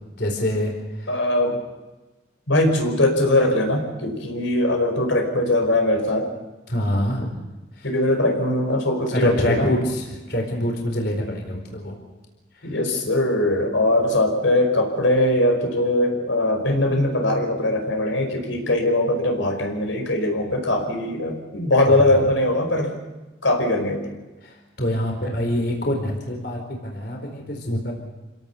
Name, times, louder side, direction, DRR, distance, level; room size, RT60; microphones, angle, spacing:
voice 1, 0.2-1.1 6.7-7.4 7.8-7.9 9.1-12.0 12.6-12.7 21.9-22.0 24.4-27.9, left 1 dB, 55° left, 2 dB, 4.5 m, -25 dB
voice 2, 1.1-1.6 2.5-6.3 7.8-9.7 12.6-23.0 23.4-24.1, left 1 dB, 80° left, 3 dB, 5.1 m, -21 dB
28.5 x 17.5 x 7.0 m, 1.1 s
head